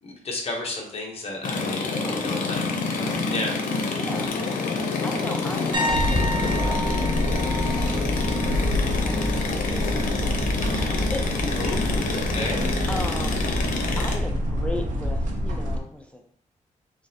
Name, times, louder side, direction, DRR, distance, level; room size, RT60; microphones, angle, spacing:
voice 1, 0.0-2.0 2.2-3.6 11.6-12.7, left 2 dB, 45° left, -1 dB, 1.0 m, -32 dB
sound 1, 1.4-14.2, left 4 dB, 90° left, 0.6 m, -27 dB
voice 2, 1.9-2.4 4.0-8.2 9.0-11.9 12.9-13.5 14.0-16.2, left 1 dB, 10° left, 2 dB, 0.4 m, -37 dB
sound 2, 5.7-9.5 9.8-10.2 13.0-13.1, equal, 35° right, 0.8 m, -32 dB
sound 3, 5.9-15.8, equal, 70° right, 0.7 m, -27 dB
3.7 x 3.1 x 2.8 m, 0.63 s
wide cardioid pair, 115°, 14 cm